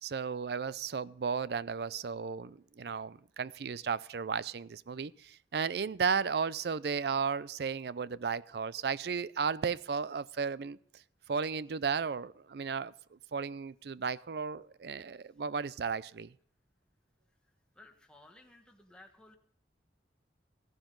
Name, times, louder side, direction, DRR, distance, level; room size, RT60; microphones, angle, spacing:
voice 1, 0.0-10.8 11.3-12.9 13.3-16.3, right 6 dB, 65° right, 0.4 m, -34 dB
voice 2, 17.7-19.3, left 2 dB, 5° left, 1.3 m, -57 dB
15.0 x 11.5 x 3.8 m
head